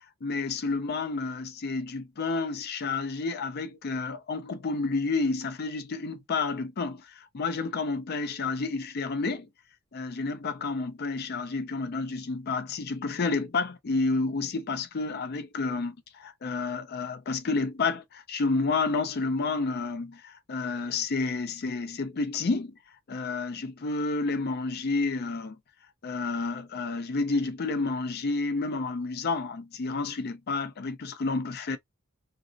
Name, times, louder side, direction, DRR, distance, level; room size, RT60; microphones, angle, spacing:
voice 1, 0.2-9.5 9.9-22.7 23.1-25.6 26.0-31.8, left 3 dB, 50° left, 0.5 m, -30 dB
2.6 x 2.0 x 2.4 m
head